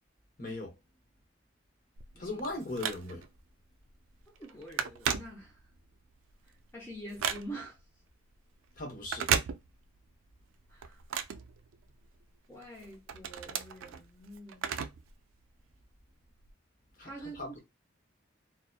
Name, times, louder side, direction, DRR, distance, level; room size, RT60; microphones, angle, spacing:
voice 1, 0.4-0.7 2.2-3.2 8.8-9.3 17.0-17.6, left 2 dB, 45° left, 0.9 m, -38 dB
Telephone, 2.0-3.4 3.9-4.1 4.4-5.9 6.3-7.8 9.0-10.1 10.4-12.2 12.6-15.1 15.4-15.5 16.4-16.5, right 8 dB, 85° right, 0.3 m, -35 dB
voice 2, 2.1-2.7 4.3-5.6 6.7-7.8 10.7-11.0 12.5-14.7 17.0-17.6, right 1 dB, 10° left, 0.5 m, -46 dB
2.8 x 2.0 x 2.2 m
head